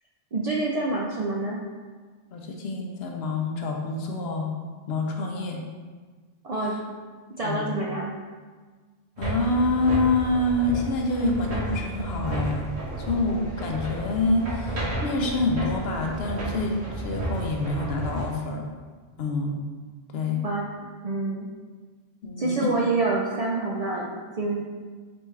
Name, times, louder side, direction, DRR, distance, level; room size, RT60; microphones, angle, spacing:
voice 1, 0.3-1.6 6.4-6.8 7.4-8.2 20.4-20.7 21.0-21.5 22.4-24.6, right 3 dB, 55° right, -3 dB, 0.4 m, -27 dB
voice 2, 2.3-4.5 4.9-5.6 7.4-7.7 9.2-12.7 13.0-18.6 19.2-19.6 20.1-20.4 22.2-22.8, left 2 dB, 70° left, 1 dB, 0.9 m, -26 dB
sound 1, 9.2-18.3, right 1 dB, 80° right, 1.3 m, -32 dB
4.3 x 3.4 x 3.2 m, 1.4 s
omnidirectional pair, 1.1 m